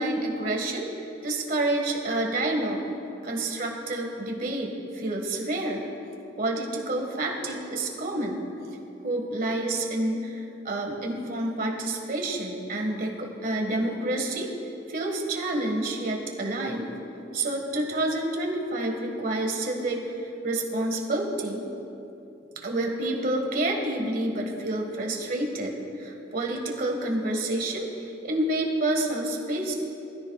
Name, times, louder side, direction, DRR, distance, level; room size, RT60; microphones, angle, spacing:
voice 1, 0.0-2.9 3.2-5.9 6.4-8.5 9.0-14.5 14.9-16.9 17.3-20.0 20.4-21.7 22.6-29.7, right 1 dB, 50° right, 1 dB, 1.7 m, -28 dB
20.5 x 13.5 x 2.4 m, 2.8 s
head